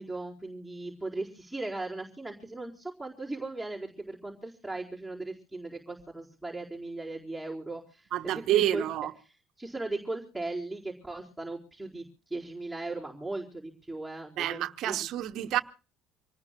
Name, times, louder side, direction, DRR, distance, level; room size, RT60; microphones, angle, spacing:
voice 1, 0.0-8.9 9.2-15.0, right 2 dB, ahead, 4.4 m, -38 dB
voice 2, 8.1-9.1 14.4-15.6, right 13 dB, 60° right, 1.1 m, -28 dB
27.0 x 19.0 x 2.3 m
hypercardioid pair, 65°, 0 cm